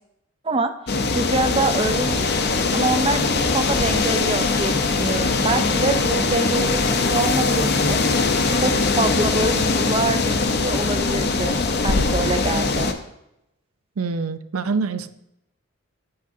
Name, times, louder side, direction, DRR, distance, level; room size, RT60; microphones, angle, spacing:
sound 1, 0.9-12.9, left 3 dB, 50° left, 0.6 m, -21 dB
voice 1, 1.1-2.3 2.7-11.6 11.8-12.9, right 3 dB, 25° right, 8 dB, 0.5 m, -25 dB
voice 2, 14.0-15.1, right 4 dB, 75° right, 12 dB, 0.5 m, -25 dB
9.2 x 8.6 x 2.7 m, 0.85 s
head